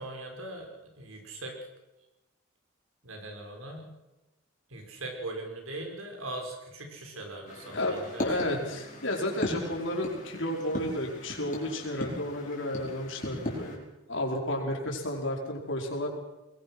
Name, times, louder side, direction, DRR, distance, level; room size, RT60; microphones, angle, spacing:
voice 1, 0.0-1.6 3.0-4.0 4.7-8.2 8.6-8.7 9.6-9.7, right 2 dB, 90° right, 2 dB, 5.9 m, -40 dB
sound 1, 7.5-13.8, left 1 dB, 40° left, 5.4 m, -38 dB
voice 2, 7.7-13.8 14.1-16.1, left 1 dB, 65° left, 1 dB, 5.2 m, -32 dB
22.5 x 21.5 x 6.3 m, 1.0 s
head